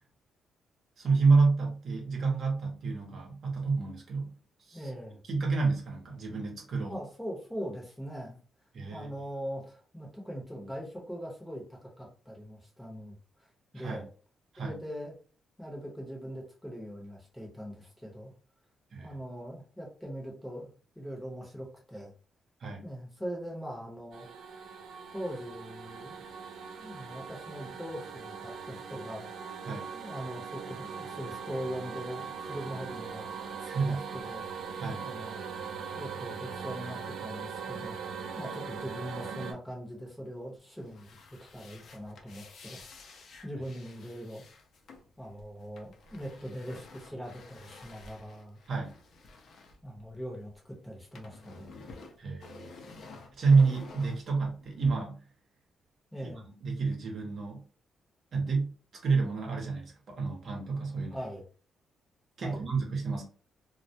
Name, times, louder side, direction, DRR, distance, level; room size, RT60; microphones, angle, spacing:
voice 1, 1.0-4.9 5.3-7.0 8.7-9.1 13.7-14.0 14.5-14.8 18.9-19.1 22.6-22.8 29.6-29.9 33.7-34.0 34.8-35.1 48.7-48.9 52.2-52.7 53.4-55.2 56.6-57.6 58.3-58.7 59.0-61.2 62.4-63.2, right 4 dB, 55° right, 0 dB, 0.8 m, -29 dB
voice 2, 4.7-5.2 6.9-8.4 8.9-13.5 13.7-14.1 14.6-15.1 15.6-18.3 19.0-22.1 22.8-24.3 25.1-26.2 26.8-29.3 29.9-34.4 35.0-35.4 35.9-41.1 41.4-44.4 45.2-48.6 49.8-51.7 56.1-56.5 61.1-61.4 62.4-62.6, equal, 5° left, -1 dB, 0.8 m, -41 dB
sound 1, 24.1-39.5, right 6 dB, 80° right, 0.4 m, -40 dB
sound 2, 40.8-50.6 50.8-54.9, left 3 dB, 60° left, 0.5 m, -51 dB
2.2 x 2.1 x 2.7 m, 0.40 s
cardioid pair, 120°, 0 cm